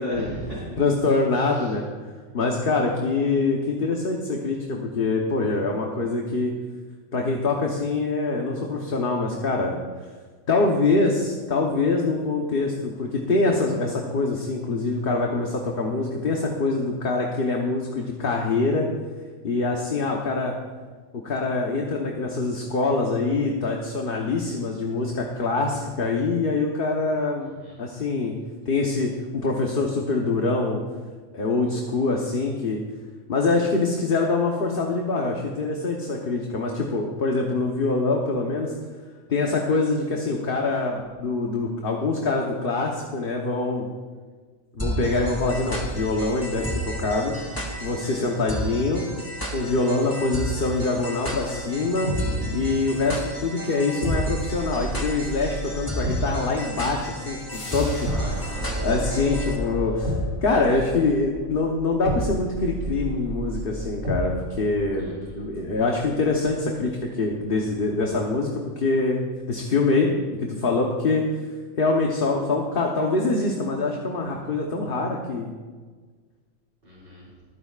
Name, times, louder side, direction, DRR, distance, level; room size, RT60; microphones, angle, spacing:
voice 1, 0.0-0.8 1.5-1.7 27.4-27.8 50.0-50.4 52.1-52.9 58.1-59.0 65.0-65.4 76.8-77.3, equal, 40° right, -10 dB, 4.6 m, -36 dB
voice 2, 0.8-1.9 2.3-6.5 7.1-9.8 10.5-18.9 19.4-20.5 21.2-27.5 27.8-28.3 28.6-30.8 31.3-32.8 33.3-38.7 39.3-43.8 44.7-47.3 47.8-49.0 49.5-52.1 52.5-58.5 58.8-60.1 60.4-69.2 69.5-70.1 70.4-71.2 71.8-75.5, left 3 dB, 45° left, 0 dB, 1.2 m, -24 dB
sound 1, 44.8-59.6, right 1 dB, 15° left, 1.8 m, -33 dB
sound 2, 51.2-53.0 53.3-53.4 54.0-66.5 66.8-67.0, equal, 85° right, 3.8 m, -31 dB
sound 3, 57.5-58.5, left 2 dB, 75° left, 2.4 m, -39 dB
25.0 x 9.9 x 2.5 m, 1.5 s
omnidirectional pair, 1.4 m